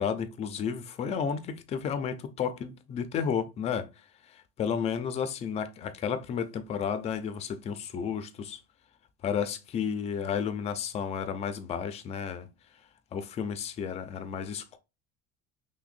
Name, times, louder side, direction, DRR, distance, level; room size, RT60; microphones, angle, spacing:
voice 1, 0.0-3.9 4.6-8.6 9.2-12.5 13.1-14.8, left 7 dB, 20° left, 0.3 m, -32 dB
5.9 x 2.1 x 2.4 m
cardioid pair, 160°, 32 cm